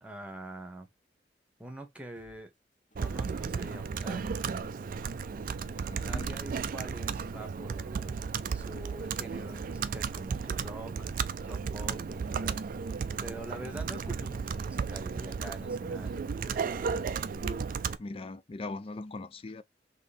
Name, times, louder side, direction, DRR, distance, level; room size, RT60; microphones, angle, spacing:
voice 1, 0.0-0.9 1.6-2.5 3.0-4.4 5.8-8.2 8.5-11.1 11.4-12.6 13.2-17.1, right 1 dB, 10° right, 1.0 m, -45 dB
sound 1, 2.2-2.4 2.9-3.1 3.7-5.4 5.9-6.1 6.7-8.4 8.9-9.1 9.7-11.2, left 1 dB, 50° left, 1.2 m, -61 dB
Computer keyboard, 3.0-18.0, right 5 dB, 50° right, 0.4 m, -34 dB
voice 2, 5.9-6.3 18.0-19.6, left 2 dB, 35° left, 0.4 m, -40 dB
3.8 x 3.0 x 4.2 m
head